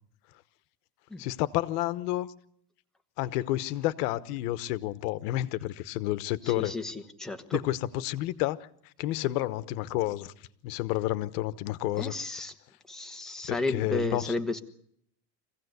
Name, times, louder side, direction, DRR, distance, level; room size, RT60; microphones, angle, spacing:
voice 1, 1.2-2.3 3.2-6.7 7.5-7.8 8.0-8.6 9.0-10.3 10.6-12.1 13.5-14.3, left 15 dB, 75° left, 1.2 m, -30 dB
voice 2, 6.4-7.7 12.0-12.5 12.9-14.6, left 2 dB, ahead, 1.3 m, -33 dB
25.0 x 16.5 x 8.1 m
cardioid pair, 145°, 46 cm